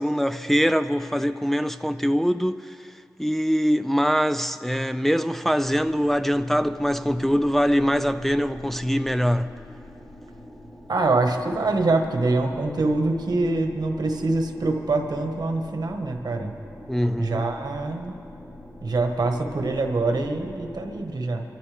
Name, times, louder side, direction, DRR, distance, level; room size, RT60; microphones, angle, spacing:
voice 1, 0.0-2.8 3.2-9.5 16.9-17.5, equal, 5° left, 0.4 m, -23 dB
sound 1, 5.6-21.0, left 1 dB, 75° left, 3.4 m, -44 dB
voice 2, 10.9-16.5 17.2-18.1 18.8-21.4, right 3 dB, 75° right, 1.4 m, -24 dB
24.5 x 14.0 x 3.4 m
cardioid pair, 55°, 7 cm